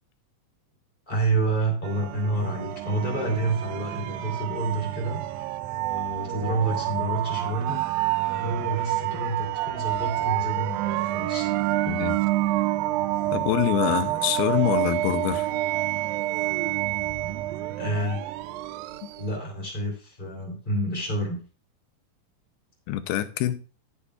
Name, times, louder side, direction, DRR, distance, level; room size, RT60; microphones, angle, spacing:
voice 1, 1.1-5.2 5.9-7.8 8.3-11.5 17.8-18.2 19.1-21.4, right 2 dB, 15° left, 3.3 m, -28 dB
sound 1, 1.8-19.3, right 16 dB, 80° right, 2.2 m, -28 dB
voice 2, 11.9-12.2 13.3-15.5 22.9-23.6, left 13 dB, 85° left, 2.6 m, -25 dB
15.5 x 8.4 x 2.5 m
omnidirectional pair, 4.4 m